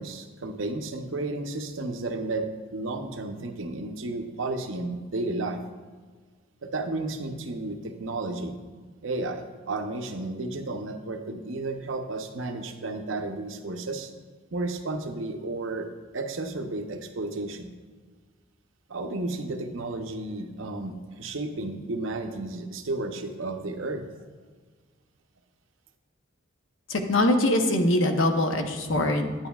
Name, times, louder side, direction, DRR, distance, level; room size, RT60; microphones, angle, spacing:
voice 1, 0.0-5.6 6.6-8.6 9.0-14.1 14.5-15.9 16.1-17.7 18.9-24.1, right 2 dB, 75° right, 5 dB, 0.7 m, -32 dB
voice 2, 26.9-29.5, left 1 dB, 70° left, 5 dB, 0.8 m, -23 dB
9.4 x 8.9 x 2.3 m, 1.5 s
head